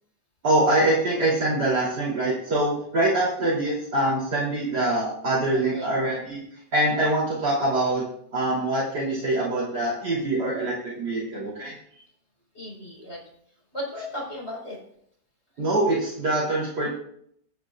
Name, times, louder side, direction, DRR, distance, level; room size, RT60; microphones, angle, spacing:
voice 1, 0.4-6.4 6.7-8.0 8.3-11.7 15.6-16.9, right 1 dB, 70° right, -7 dB, 3.9 m, -24 dB
voice 2, 5.5-5.9 12.5-13.2 13.7-14.8, left 1 dB, 35° left, -3 dB, 4.6 m, -35 dB
23.5 x 9.5 x 2.4 m, 0.69 s
omnidirectional pair, 1.9 m